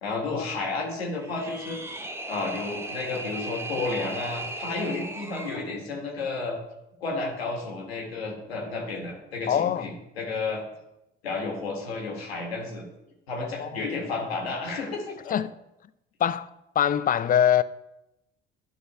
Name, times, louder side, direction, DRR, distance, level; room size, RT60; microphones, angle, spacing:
voice 1, 0.0-1.8 2.3-6.6 7.0-10.6 11.2-12.9 13.3-15.3, left 3 dB, 85° left, 1.8 m, -32 dB
sound 1, 1.1-5.6, right 2 dB, 10° right, 1.0 m, -37 dB
voice 2, 9.5-9.9 13.6-13.8 15.3-15.5 16.2-16.5 16.8-17.6, left 9 dB, 30° left, 0.5 m, -23 dB
11.5 x 4.0 x 5.6 m
hypercardioid pair, 55°, 30 cm